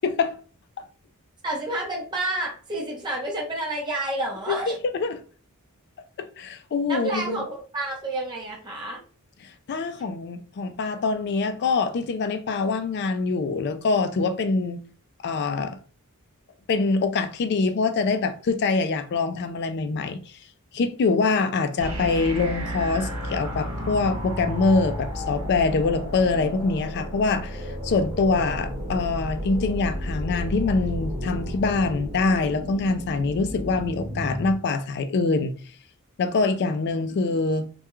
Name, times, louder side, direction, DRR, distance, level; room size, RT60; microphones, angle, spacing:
voice 1, 0.0-0.4 4.5-5.2 6.2-7.4 9.7-14.8 15.2-15.8 16.7-20.2 20.7-35.5 36.2-37.7, left 4 dB, 50° left, 0.3 m, -24 dB
voice 2, 1.4-4.8 6.9-9.0, right 2 dB, 20° right, 0.7 m, -29 dB
sound 1, 21.8-34.5, equal, 65° right, 0.9 m, -32 dB
2.2 x 2.2 x 2.9 m
head